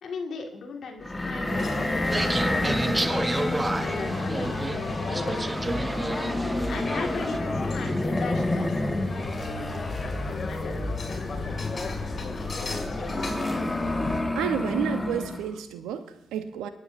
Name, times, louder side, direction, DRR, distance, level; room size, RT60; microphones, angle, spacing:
voice 1, 0.0-5.3 6.7-9.9 10.2-11.7 12.2-13.3, left 4 dB, 65° left, 2 dB, 1.8 m, -39 dB
sound 1, 1.0-15.5, left 1 dB, 15° left, 1.4 m, -30 dB
sound 2, 1.5-14.2, left 3 dB, 50° left, 2.3 m, -33 dB
sound 3, 2.0-7.4, right 2 dB, 25° right, 0.8 m, -31 dB
voice 2, 14.3-16.7, right 9 dB, 80° right, 9 dB, 0.8 m, -30 dB
26.0 x 9.6 x 2.6 m, 0.79 s
hypercardioid pair, 40°, 0 cm